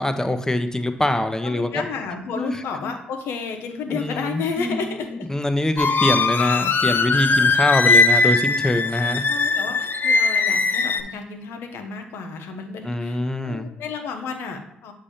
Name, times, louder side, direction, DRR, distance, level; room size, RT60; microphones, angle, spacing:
voice 1, 0.0-1.8 2.3-2.6 3.9-9.3 12.8-13.7, left 1 dB, 15° left, 8 dB, 0.7 m, -24 dB
voice 2, 1.4-5.3 7.2-7.4 9.3-14.9, left 5 dB, 75° left, 5 dB, 0.8 m, -32 dB
sound 1, 5.8-11.0, left 4 dB, 50° left, 0.5 m, -20 dB
7.3 x 2.8 x 5.1 m, 0.72 s
hypercardioid pair, 50°, 4 cm